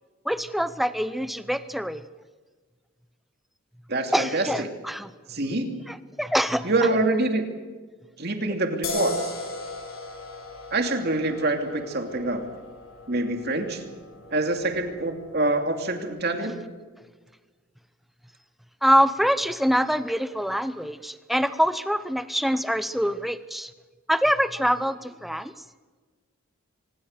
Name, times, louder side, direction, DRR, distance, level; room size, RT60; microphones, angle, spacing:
voice 1, 0.2-2.0 4.1-5.1 5.9-6.7 18.8-23.7 24.1-25.6, equal, ahead, 13 dB, 0.7 m, -25 dB
voice 2, 3.9-4.5 5.3-5.7 6.6-7.4 8.2-9.3 10.7-12.4 13.1-13.8 14.3-16.5, right 2 dB, 45° right, 5 dB, 2.7 m, -25 dB
sound 1, 8.8-16.1, left 2 dB, 70° left, 6.6 m, -37 dB
24.5 x 20.5 x 6.7 m, 1.4 s
head